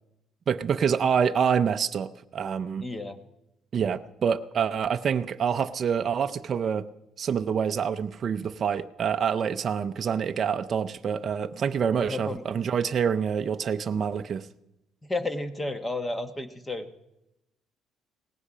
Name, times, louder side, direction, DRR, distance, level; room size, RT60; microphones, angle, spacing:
voice 1, 0.5-2.9 3.7-6.9 7.2-14.5, right 7 dB, 40° right, 8 dB, 0.5 m, -26 dB
voice 2, 2.8-3.2 12.0-12.4 15.1-16.9, left 2 dB, 15° left, 9 dB, 1.1 m, -32 dB
18.5 x 15.5 x 5.0 m, 0.91 s
cardioid pair, 145°, 0 cm